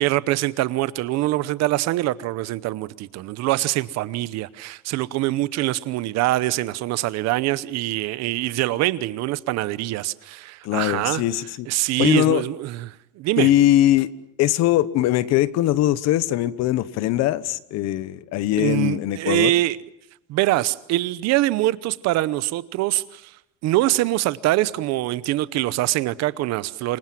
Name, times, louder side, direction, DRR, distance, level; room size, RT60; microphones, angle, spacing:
voice 1, 0.0-11.2 11.7-13.5 18.6-19.8 20.3-23.3 23.6-27.0, right 16 dB, 50° right, 0.9 m, -24 dB
voice 2, 10.6-11.7 12.0-12.4 13.4-14.1 14.4-19.5, left 13 dB, 45° left, 1.1 m, -21 dB
28.0 x 23.5 x 7.6 m
cardioid pair, 170°, 35 cm